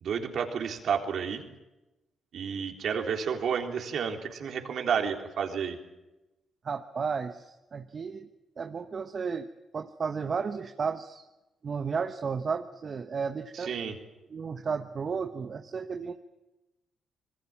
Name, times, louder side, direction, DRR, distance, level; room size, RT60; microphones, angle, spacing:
voice 1, 0.0-1.4 2.3-5.8 13.5-13.9, right 7 dB, 65° right, 4 dB, 3.6 m, -31 dB
voice 2, 6.6-8.3 8.6-9.5 9.7-11.2 11.6-13.7 14.3-16.1, right 5 dB, 50° right, 7 dB, 1.3 m, -33 dB
26.0 x 21.0 x 7.4 m, 1.0 s
hypercardioid pair, 50°, 0 cm